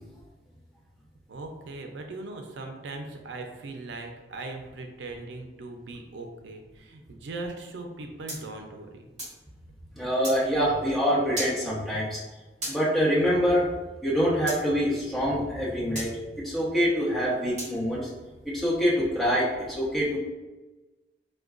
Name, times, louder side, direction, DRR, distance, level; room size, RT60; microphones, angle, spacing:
voice 1, 1.3-9.1, right 2 dB, 90° right, 4 dB, 0.4 m, -39 dB
sound 1, 8.3-9.4 10.2-10.4 11.4-11.6 12.6-12.8 14.5-14.6 16.0-16.1 17.6-17.8, right 1 dB, 45° right, 1.3 m, -35 dB
voice 2, 9.9-12.2 12.7-13.6 14.0-16.1 16.4-18.1 18.4-20.2, equal, ahead, -8 dB, 1.0 m, -25 dB
4.6 x 2.2 x 2.4 m, 1.2 s
head